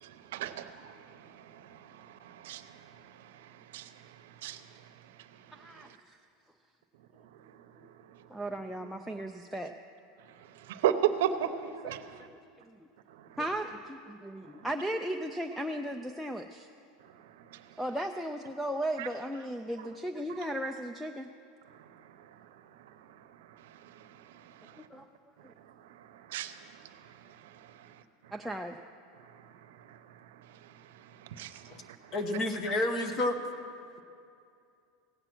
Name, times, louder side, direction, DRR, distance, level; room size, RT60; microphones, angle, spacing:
voice 1, 0.0-2.8 3.7-3.9 4.4-4.6 10.7-11.5 11.8-12.2 17.5-17.6 19.0-19.1 24.4-24.5 26.3-26.6 26.9-27.0 29.9-30.0 31.4-32.0, right 10 dB, 75° right, 10 dB, 0.7 m, -34 dB
voice 2, 5.5-6.2 8.3-9.7 11.8-11.9 13.4-16.7 17.8-21.3 24.9-25.0 28.3-28.8, right 1 dB, ahead, 7 dB, 0.3 m, -36 dB
voice 3, 32.1-33.4, left 1 dB, 30° left, 7 dB, 1.0 m, -30 dB
16.5 x 8.8 x 6.1 m, 2.5 s
supercardioid pair, 160°, 0 cm